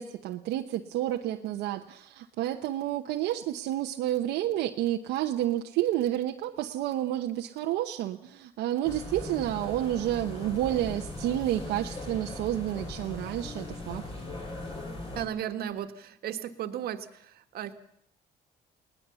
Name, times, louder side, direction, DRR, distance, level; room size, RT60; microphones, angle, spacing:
voice 1, 0.0-14.0, right 13 dB, 85° right, 2 dB, 1.1 m, -30 dB
sound 1, 8.8-15.3, left 2 dB, 35° left, 5.6 m, -39 dB
voice 2, 15.1-17.7, right 10 dB, 65° right, 8 dB, 1.6 m, -35 dB
21.0 x 18.5 x 7.0 m, 0.69 s
cardioid pair, 110°, 17 cm